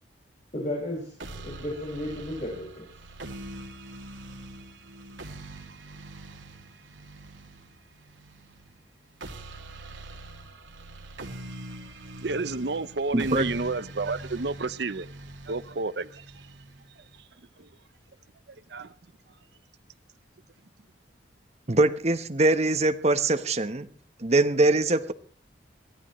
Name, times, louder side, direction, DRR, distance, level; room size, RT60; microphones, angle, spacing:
voice 1, 0.5-1.1 1.4-2.8, left 1 dB, 40° left, 5.9 m, -33 dB
sound 1, 1.2-17.2, right 2 dB, 85° right, 2.5 m, -43 dB
voice 2, 12.2-15.1 15.5-16.4 17.6-17.7 18.5-18.9, right 3 dB, 60° right, 0.7 m, -31 dB
voice 3, 13.1-13.4 21.7-23.9 24.2-25.1, right 2 dB, 35° right, 1.1 m, -23 dB
24.0 x 16.5 x 3.2 m
head